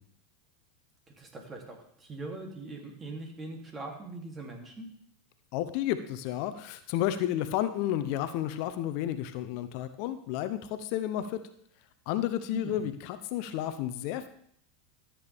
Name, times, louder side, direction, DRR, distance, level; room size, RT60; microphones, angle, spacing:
voice 1, 1.2-4.9 12.5-12.8, right 2 dB, 25° right, 1 dB, 3.0 m, -41 dB
voice 2, 5.5-11.4 12.1-14.3, left 12 dB, 60° left, 11 dB, 0.8 m, -31 dB
13.5 x 8.6 x 3.6 m, 0.67 s
hypercardioid pair, 95°, 0 cm